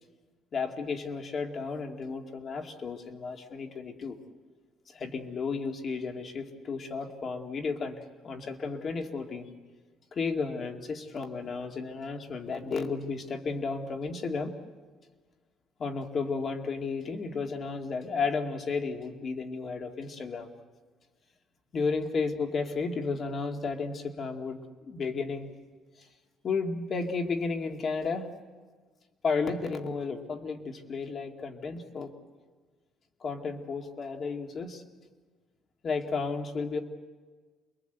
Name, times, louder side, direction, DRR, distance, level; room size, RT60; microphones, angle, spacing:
voice 1, 0.5-4.2 4.9-9.5 10.1-14.6 15.8-20.5 21.7-25.5 26.0-26.1 26.4-28.3 29.2-32.1 33.2-34.8 35.8-36.8, left 4 dB, 35° left, 4 dB, 2.3 m, -33 dB
29.0 x 22.5 x 8.1 m, 1.4 s
cardioid pair, 160°, 0 cm